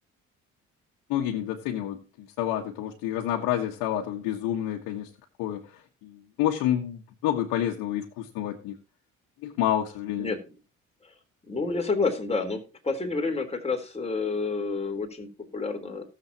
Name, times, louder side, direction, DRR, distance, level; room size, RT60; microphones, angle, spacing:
voice 1, 1.1-5.1 5.4-8.8 9.4-10.3, left 11 dB, 80° left, 1 dB, 1.5 m, -29 dB
voice 2, 11.5-16.0, left 3 dB, 20° left, 2 dB, 3.7 m, -29 dB
18.5 x 7.4 x 2.9 m, 0.31 s
supercardioid pair, 65°, 33 cm